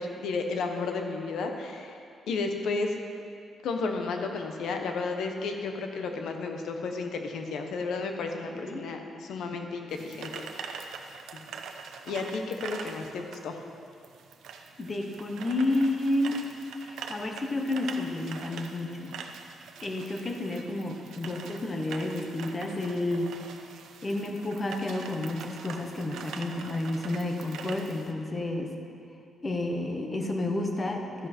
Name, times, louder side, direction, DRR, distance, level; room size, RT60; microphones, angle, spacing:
voice 1, 0.0-1.9 2.3-2.9 3.6-10.9 11.3-11.4 12.1-13.6, left 4 dB, 70° left, 4 dB, 1.1 m, -33 dB
sound 1, 9.9-28.1, right 5 dB, 80° right, 0.8 m, -43 dB
voice 2, 14.8-16.5 16.8-19.1 19.8-23.3 24.0-28.7 29.4-31.3, left 2 dB, 20° left, 3 dB, 1.0 m, -30 dB
13.0 x 10.5 x 4.4 m, 2.4 s
wide cardioid pair, 175°, 0 cm